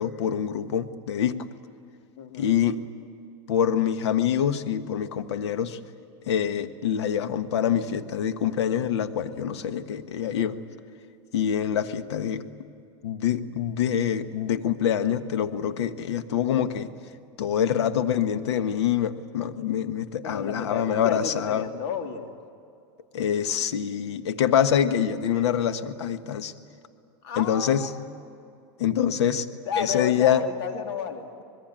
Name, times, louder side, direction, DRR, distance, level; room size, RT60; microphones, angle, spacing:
voice 1, 0.0-1.5 2.4-2.8 3.5-5.8 6.3-10.6 11.3-12.5 13.0-16.9 17.4-21.7 23.1-26.5 27.4-27.9 28.8-29.5 29.8-30.4, left 9 dB, 85° left, 9 dB, 1.5 m, -25 dB
voice 2, 2.2-2.5 20.2-22.3 27.2-28.0 29.6-31.4, left 7 dB, 70° left, 4 dB, 3.3 m, -32 dB
26.0 x 21.0 x 9.1 m, 2.5 s
supercardioid pair, 125°, 14 cm